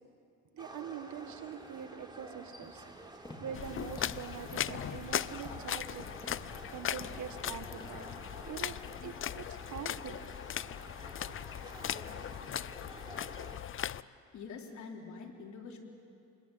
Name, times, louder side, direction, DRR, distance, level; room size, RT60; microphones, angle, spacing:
voice 1, 0.5-2.8 3.4-6.1 6.7-8.1 8.5-8.8 9.0-10.2 11.2-11.3, right 8 dB, 70° right, 9 dB, 1.7 m, -44 dB
sound 1, 0.6-13.6, right 1 dB, 15° right, 3.7 m, -50 dB
sound 2, 2.6-8.2, left 1 dB, 15° left, 4.0 m, -52 dB
sound 3, 3.5-14.0, left 10 dB, 45° left, 0.5 m, -39 dB
voice 2, 14.3-15.8, left 5 dB, 70° left, 1 dB, 3.7 m, -45 dB
27.5 x 21.0 x 9.1 m, 2.6 s
cardioid pair, 90°, 30 cm